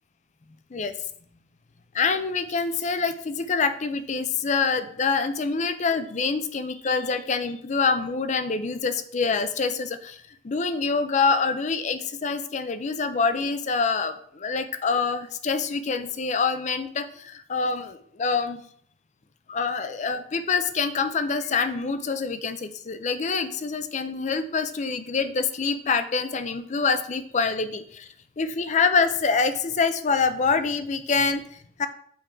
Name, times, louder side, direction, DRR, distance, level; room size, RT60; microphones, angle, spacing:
voice 1, 1.9-18.6 19.5-28.1 28.4-31.9, left 4 dB, 40° left, 10 dB, 0.5 m, -26 dB
7.0 x 4.5 x 3.8 m, 0.63 s
head